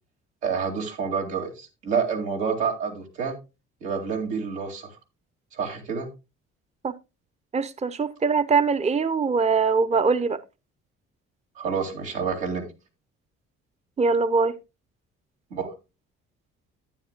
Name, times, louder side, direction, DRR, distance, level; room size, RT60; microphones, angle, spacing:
voice 1, 0.4-3.3 3.8-4.9 5.5-6.1 11.6-12.7 15.5-15.7, right 6 dB, 90° right, 2.5 m, -28 dB
voice 2, 7.5-10.4 14.0-14.5, right 4 dB, 20° right, 0.7 m, -22 dB
12.0 x 9.3 x 2.2 m
supercardioid pair, 65°, 31 cm